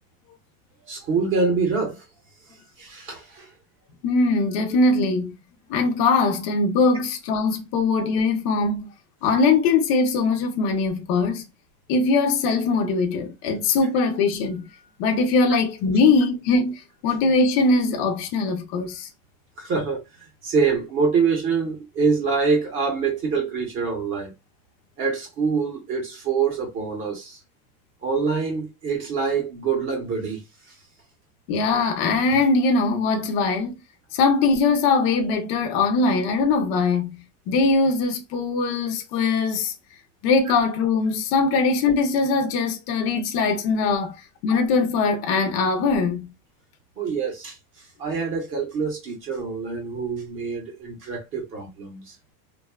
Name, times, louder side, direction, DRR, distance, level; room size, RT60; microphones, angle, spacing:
voice 1, 0.9-2.0 2.8-3.5 19.6-20.0 20.4-24.3 25.0-27.4 28.0-30.4 47.0-47.6 48.0-52.1, right 5 dB, 25° right, 0.7 m, -25 dB
voice 2, 4.0-5.4 5.7-8.9 9.2-11.4 11.9-14.6 15.0-19.1 31.5-33.8 34.1-39.7 40.2-44.2 44.4-46.3, left 4 dB, 40° left, 0.5 m, -21 dB
2.6 x 2.3 x 2.2 m
supercardioid pair, 160°, 46 cm